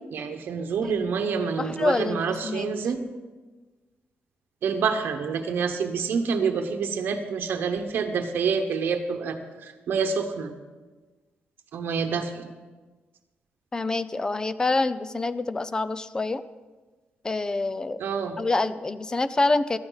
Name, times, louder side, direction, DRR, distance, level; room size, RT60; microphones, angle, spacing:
voice 1, 0.1-3.0 4.6-10.5 11.7-12.5 18.0-18.4, right 5 dB, 70° right, 5 dB, 1.0 m, -27 dB
voice 2, 1.6-2.7 13.7-16.4 17.2-18.0 18.4-19.8, left 3 dB, 20° left, 14 dB, 0.5 m, -26 dB
17.5 x 12.5 x 4.0 m, 1.3 s
wide cardioid pair, 145°, 4 cm